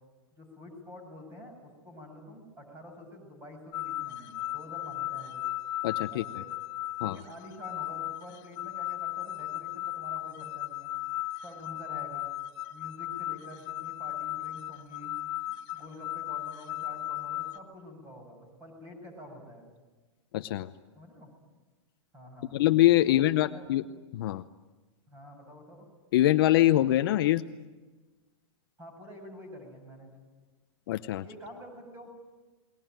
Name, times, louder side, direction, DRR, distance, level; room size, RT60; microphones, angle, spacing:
voice 1, 0.3-5.5 6.1-6.5 7.0-10.9 11.4-12.3 12.7-15.2 15.5-19.6 21.0-21.3 22.1-22.6 23.1-23.7 25.1-25.9 28.8-30.1 31.2-32.1, left 1 dB, 15° right, 5 dB, 7.1 m, -48 dB
sound 1, 3.7-17.6, left 15 dB, 25° left, 1.4 m, -36 dB
voice 2, 5.8-6.2 7.0-7.2 20.3-20.7 22.5-23.8 24.1-24.4 26.1-27.4 30.9-31.2, left 14 dB, 45° left, 9 dB, 0.8 m, -24 dB
29.5 x 21.5 x 9.2 m, 1.2 s
supercardioid pair, 165°, 16 cm